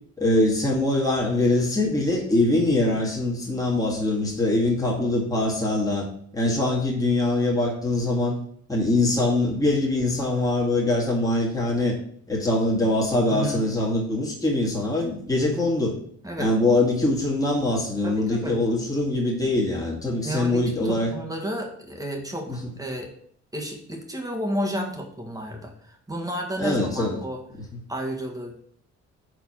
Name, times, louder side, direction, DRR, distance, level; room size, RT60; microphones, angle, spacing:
voice 1, 0.2-6.1 6.3-8.4 8.7-12.0 12.3-16.0 16.4-21.2 22.5-22.7 26.6-27.2, left 2 dB, 10° left, -4 dB, 1.8 m, -23 dB
voice 2, 13.3-13.6 16.2-16.5 18.0-18.6 20.2-23.1 23.5-27.4 27.9-28.5, equal, 10° right, 1 dB, 1.5 m, -31 dB
4.7 x 4.0 x 5.6 m, 0.63 s
cardioid pair, 90°, 30 cm